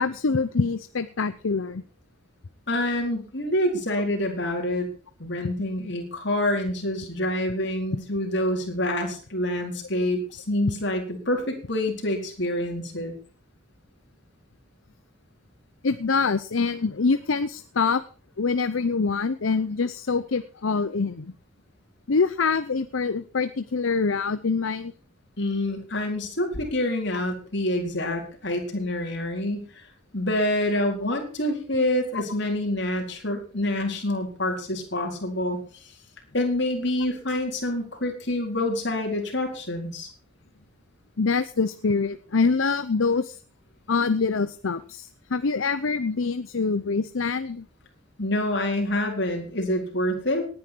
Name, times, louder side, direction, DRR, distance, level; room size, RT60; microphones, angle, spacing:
voice 1, 0.0-1.8 15.8-18.0 18.4-21.3 22.1-24.9 41.2-43.4 43.9-47.7, left 4 dB, 75° left, 12 dB, 0.7 m, -25 dB
voice 2, 2.7-4.9 5.2-13.1 25.4-29.9 30.1-35.6 36.3-40.1 48.2-50.5, left 1 dB, 55° left, 2 dB, 4.2 m, -27 dB
18.5 x 9.8 x 4.6 m, 0.39 s
head